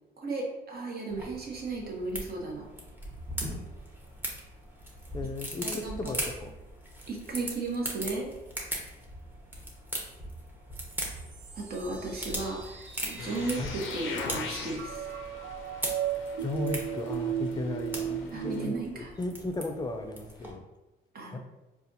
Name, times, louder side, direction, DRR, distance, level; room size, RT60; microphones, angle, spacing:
voice 1, 0.2-2.7 5.6-6.1 7.1-8.3 11.5-15.1 18.3-19.1 21.1-21.4, right 3 dB, 50° right, -1 dB, 0.9 m, -35 dB
sound 1, 1.1-20.5, right 1 dB, 10° right, 0.8 m, -40 dB
voice 2, 5.1-6.5 13.6-13.7 16.4-20.7 21.3-21.4, left 2 dB, 20° left, 6 dB, 0.4 m, -35 dB
sound 2, 10.8-18.9, right 9 dB, 65° right, 0.5 m, -37 dB
sound 3, 13.2-18.7, left 5 dB, 85° left, 0.5 m, -42 dB
4.0 x 2.4 x 2.6 m, 1.0 s
cardioid pair, 90°, 20 cm